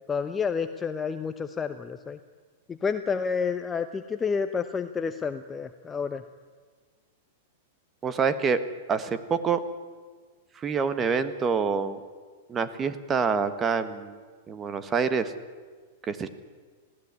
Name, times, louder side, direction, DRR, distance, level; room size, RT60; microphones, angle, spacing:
voice 1, 0.1-2.2 2.7-6.2, left 5 dB, 20° left, 9 dB, 0.9 m, -29 dB
voice 2, 8.0-8.6 8.9-9.6 10.6-12.0 12.5-14.2 14.5-15.3 16.1-16.3, right 5 dB, 25° right, 12 dB, 1.6 m, -26 dB
20.0 x 15.5 x 9.8 m, 1.5 s
hypercardioid pair, 105°, 0 cm